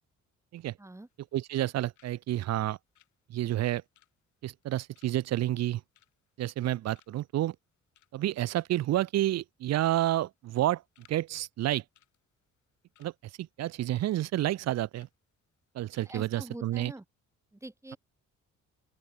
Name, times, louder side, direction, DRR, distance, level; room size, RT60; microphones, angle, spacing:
voice 1, 0.8-1.1 16.0-17.0 17.5-18.0, right 1 dB, 10° right, 2.3 m, -44 dB
sound 1, 1.1-1.7 1.9-2.2 2.4-6.7 6.9-7.3 7.7-8.3 8.6-8.7 8.9-9.4 9.9-10.2 10.4-11.2 11.5-11.6 11.9-13.1 13.5-14.1 14.4-14.6 14.9-15.1 15.6-15.7 15.9-16.1 16.4-16.6, left 12 dB, 75° left, 5.7 m, -66 dB
voice 2, 1.3-2.8 3.3-3.8 4.4-5.8 6.4-7.6 8.1-10.8 11.1-11.8 13.0-13.1 13.4-15.1 15.7-16.9, right 14 dB, 60° right, 0.5 m, -29 dB
open air
cardioid pair, 90°, 30 cm